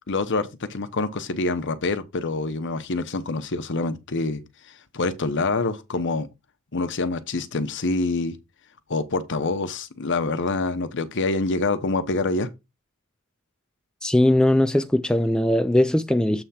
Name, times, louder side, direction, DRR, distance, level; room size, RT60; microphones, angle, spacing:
voice 1, 0.1-4.4 4.9-6.3 6.7-8.4 8.9-12.5, left 3 dB, 55° left, 0.9 m, -26 dB
voice 2, 14.0-16.4, left 1 dB, 5° left, 0.4 m, -20 dB
8.0 x 3.4 x 5.7 m
head